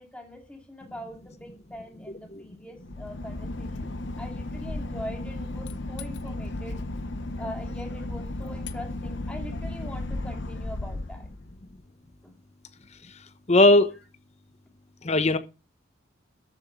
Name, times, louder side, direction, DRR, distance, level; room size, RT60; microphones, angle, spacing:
voice 1, 0.0-3.9 4.2-6.8 7.4-11.3 12.0-12.3, equal, 5° left, 2.5 m, -42 dB
Boat Water vehicle / Engine, 2.8-11.8, left 2 dB, 65° left, 0.9 m, -34 dB
voice 2, 13.5-13.9 15.0-15.4, left 2 dB, 35° left, 1.0 m, -18 dB
13.5 x 7.7 x 4.6 m
head